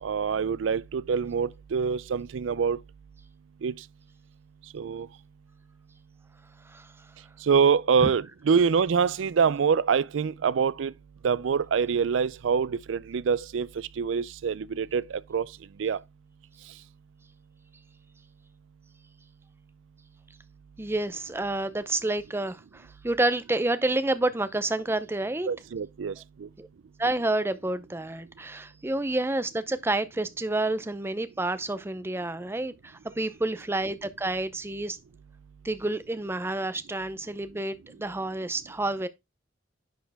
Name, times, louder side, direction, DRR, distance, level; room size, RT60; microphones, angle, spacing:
voice 1, 0.0-2.8 3.6-3.7 4.7-5.1 7.5-10.9 11.2-15.5 15.8-16.0 25.5-26.5, right 6 dB, 85° right, 0.4 m, -25 dB
voice 2, 20.8-25.5 26.6-26.7 27.0-35.0 35.6-39.1, right 2 dB, 15° right, 0.5 m, -29 dB
10.5 x 4.4 x 3.4 m
head